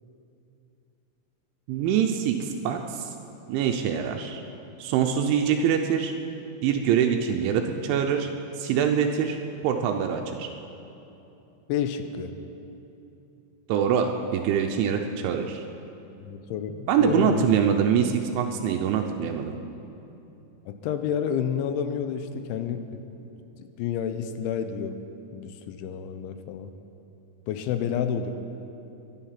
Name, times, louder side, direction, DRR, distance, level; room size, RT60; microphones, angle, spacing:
voice 1, 1.7-3.1 3.5-4.4 4.8-6.1 6.6-8.3 8.6-9.4 9.6-10.5 13.7-15.6 16.9-19.6, right 8 dB, 85° right, 4 dB, 3.1 m, -24 dB
voice 2, 11.7-12.3 16.2-17.5 20.7-22.8 23.6-25.0 25.3-26.7 27.5-28.3, left 8 dB, 85° left, 9 dB, 3.1 m, -29 dB
22.5 x 10.5 x 5.8 m, 2.9 s
omnidirectional pair, 5.4 m